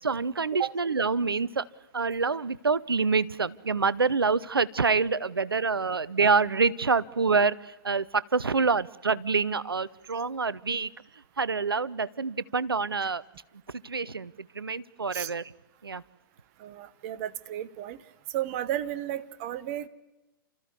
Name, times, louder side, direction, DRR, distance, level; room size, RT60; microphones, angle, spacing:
voice 1, 0.0-1.7 1.9-10.9 11.4-13.2 13.7-15.5 15.8-16.0, right 4 dB, 80° right, 20 dB, 0.8 m, -26 dB
voice 2, 16.6-18.0 18.3-19.9, right 12 dB, 40° right, 14 dB, 1.2 m, -33 dB
30.0 x 14.5 x 9.5 m, 1.0 s
figure-of-eight pair, 115°, 12 cm